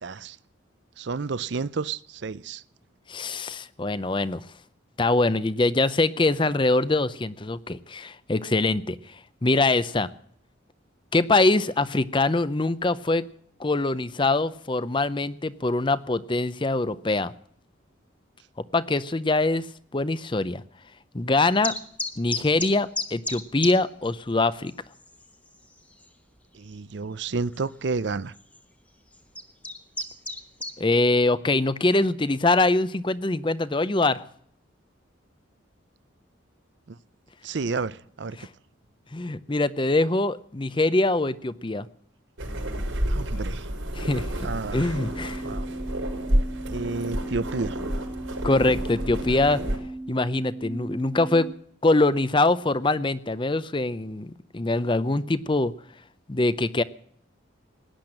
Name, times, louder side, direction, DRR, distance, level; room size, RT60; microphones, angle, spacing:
voice 1, 0.0-0.4 1.0-2.6 26.5-28.3 36.9-37.0 37.4-38.4 43.1-43.7 44.4-45.0 45.4-45.7 46.7-47.8, right 4 dB, 60° right, 0.5 m, -31 dB
voice 2, 3.1-4.4 5.0-9.0 9.4-10.1 11.1-13.3 13.6-17.3 18.7-19.6 19.9-20.6 21.1-21.7 22.2-24.7 30.8-34.2 38.4-38.5 39.1-41.9 43.9-44.3 44.7-45.4 48.4-49.6 50.1-51.5 51.8-55.7 56.3-56.8, left 2 dB, 25° left, 0.6 m, -23 dB
sound 1, 21.6-23.8 24.0-24.1 24.7-24.8 25.0-25.5 26.0-26.1 27.5-27.6 28.4-28.6 29.1-30.8, left 2 dB, 5° left, 1.1 m, -31 dB
sound 2, 42.4-49.8, equal, 85° right, 5.0 m, -30 dB
sound 3, 44.9-51.5, right 2 dB, 15° right, 0.6 m, -37 dB
18.0 x 10.5 x 7.7 m
head